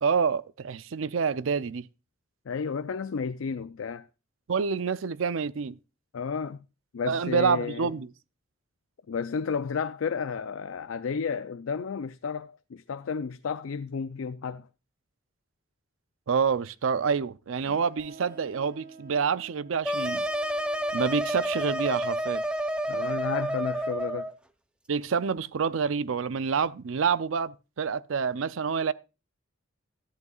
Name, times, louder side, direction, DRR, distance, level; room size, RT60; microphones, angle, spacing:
voice 1, 0.0-1.9 4.5-5.8 7.1-8.1 16.3-20.3 20.9-22.4 24.9-28.9, right 6 dB, 80° right, 0.5 m, -27 dB
voice 2, 2.5-4.1 6.1-6.6 6.9-7.9 9.1-14.7 22.9-24.3, left 6 dB, 85° left, 0.4 m, -32 dB
sound 1, 17.6-23.0, right 4 dB, 55° right, 2.4 m, -52 dB
sound 2, 19.8-24.3, right 1 dB, 5° right, 0.6 m, -29 dB
13.5 x 10.5 x 2.4 m
head